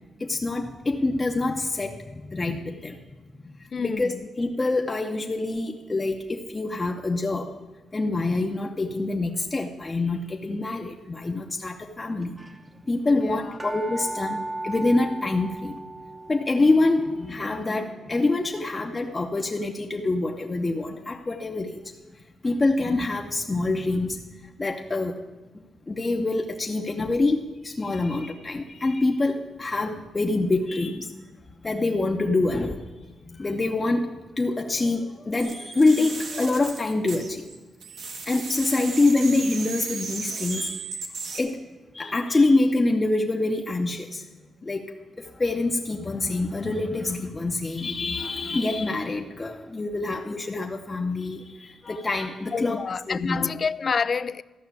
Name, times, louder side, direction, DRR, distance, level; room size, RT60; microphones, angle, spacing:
voice 1, 0.2-3.0 3.8-7.5 7.9-12.3 12.9-14.4 14.6-15.8 16.3-21.8 22.4-24.2 24.6-25.1 25.9-31.1 31.6-32.8 33.3-37.4 38.3-40.9 41.3-41.6 41.9-44.2 44.6-44.9 45.2-52.8 53.1-53.5, left 2 dB, 30° left, 0.8 m, -25 dB
voice 2, 3.7-4.3 13.1-13.6 52.5-54.4, left 5 dB, 50° left, 0.4 m, -28 dB
sound 1, 10.4-10.8 11.6-11.7 11.9-12.0 12.2-19.8 20.3-20.4, right 2 dB, 20° right, 0.9 m, -38 dB
sound 2, 35.4-37.6 37.8-41.4, right 4 dB, 75° right, 1.7 m, -35 dB
13.5 x 5.7 x 8.3 m
cardioid pair, 75°, 0 cm